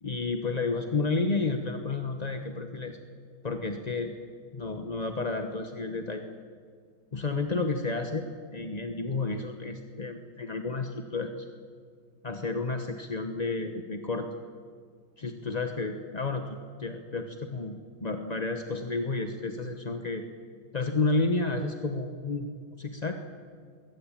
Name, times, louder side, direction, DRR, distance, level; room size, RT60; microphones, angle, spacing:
voice 1, 0.0-3.0 3.4-4.1 4.5-6.2 7.1-11.5 12.2-14.3 15.2-20.2 20.7-22.5 22.8-23.2, left 3 dB, 30° left, 6 dB, 0.8 m, -31 dB
22.0 x 17.0 x 9.0 m, 2.1 s
omnidirectional pair, 2.3 m